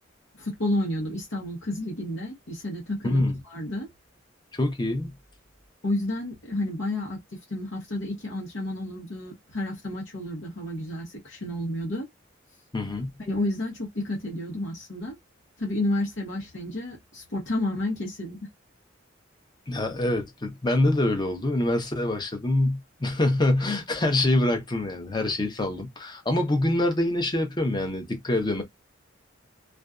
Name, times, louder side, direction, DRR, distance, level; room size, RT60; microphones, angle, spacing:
voice 1, 0.4-3.9 5.8-12.1 13.3-15.2 15.6-18.4, left 1 dB, 70° left, 0.9 m, -31 dB
voice 2, 3.0-3.4 4.6-5.1 12.7-13.1 19.7-28.6, left 1 dB, 25° left, 0.7 m, -25 dB
2.5 x 2.2 x 2.4 m
head